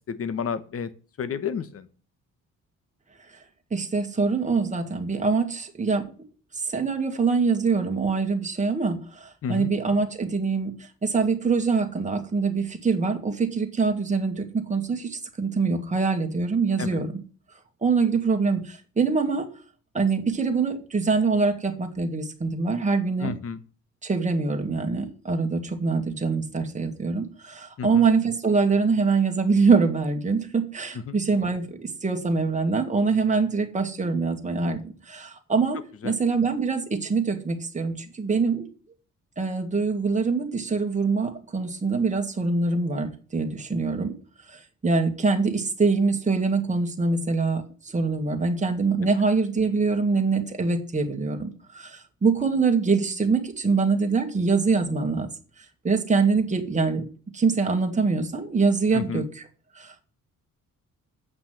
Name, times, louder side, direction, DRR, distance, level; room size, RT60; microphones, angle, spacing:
voice 1, 0.1-0.9 1.2-1.9 9.4-9.7 16.8-17.0 23.2-23.6 27.8-28.0 31.1-31.2 36.0-36.1 58.9-59.2, left 6 dB, 45° left, 13 dB, 1.2 m, -31 dB
voice 2, 3.7-6.1 6.5-17.2 17.8-19.5 19.9-23.3 24.0-38.7 39.4-44.1 44.5-55.3 55.8-57.0 57.3-59.4 59.7-60.0, right 4 dB, 25° right, 3 dB, 2.0 m, -24 dB
8.1 x 5.8 x 7.5 m, 0.40 s
cardioid pair, 120°, 31 cm